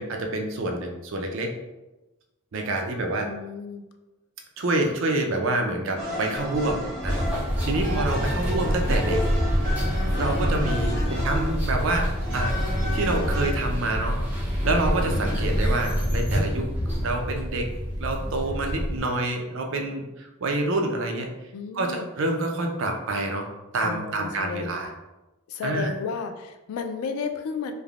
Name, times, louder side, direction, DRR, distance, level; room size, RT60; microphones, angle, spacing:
voice 1, 0.0-1.5 2.5-3.3 4.6-9.3 10.2-12.6 12.9-16.7 17.0-17.7 18.0-21.3 21.7-23.5 23.7-24.9 25.6-25.9, right 2 dB, 60° right, 3 dB, 0.4 m, -27 dB
voice 2, 3.3-3.9 10.9-11.3 21.5-22.1 23.8-24.7 25.5-27.7, left 5 dB, 85° left, 7 dB, 0.3 m, -33 dB
sound 1, 6.0-13.5, equal, 40° right, 0.9 m, -32 dB
sound 2, 7.0-19.0, equal, 10° right, 0.7 m, -26 dB
3.2 x 2.0 x 2.4 m, 1.0 s
head